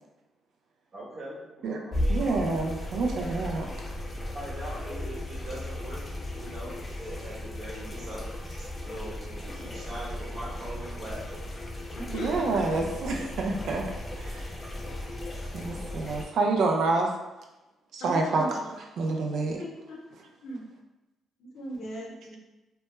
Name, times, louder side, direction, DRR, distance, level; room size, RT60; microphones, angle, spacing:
voice 1, 0.9-2.2 4.3-6.0 6.3-11.4, right 1 dB, 45° right, -6 dB, 1.0 m, -41 dB
sound 1, 1.9-16.2, left 1 dB, 20° left, 0.4 m, -36 dB
voice 2, 2.1-3.7 12.1-13.8 14.2-14.5 15.5-17.1 17.9-18.5 19.0-19.6, right 3 dB, 70° right, 1 dB, 0.4 m, -27 dB
voice 3, 11.9-12.5 18.0-18.7 19.5-20.0 20.4-20.6 21.4-22.4, equal, 75° left, -2 dB, 0.6 m, -38 dB
2.2 x 2.1 x 2.9 m, 1.0 s
cardioid pair, 90°, 0 cm